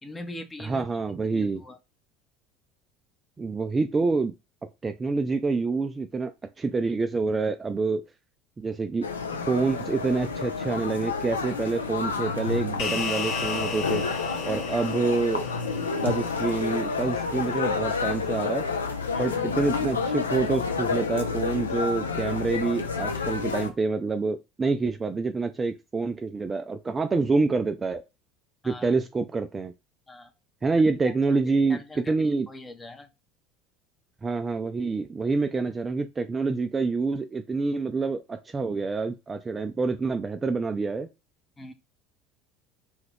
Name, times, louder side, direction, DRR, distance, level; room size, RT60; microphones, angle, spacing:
voice 1, 0.0-0.8 1.2-1.8 14.4-14.9 19.1-19.4 28.6-28.9 30.1-30.3 31.3-31.4 31.7-33.1 41.6-41.7, left 2 dB, 15° left, 0.6 m, -42 dB
voice 2, 0.6-1.6 3.4-4.3 4.8-6.3 6.6-8.0 8.6-9.1 9.5-14.0 14.4-15.4 16.0-18.7 19.2-28.0 28.6-29.7 30.6-31.8 32.1-32.5 34.2-41.1, right 4 dB, 20° right, 0.3 m, -27 dB
sound 1, 9.0-23.7, left 4 dB, 80° left, 0.4 m, -29 dB
sound 2, 12.8-17.4, left 4 dB, 55° left, 0.8 m, -35 dB
2.8 x 2.4 x 3.2 m
figure-of-eight pair, 65°, 0 cm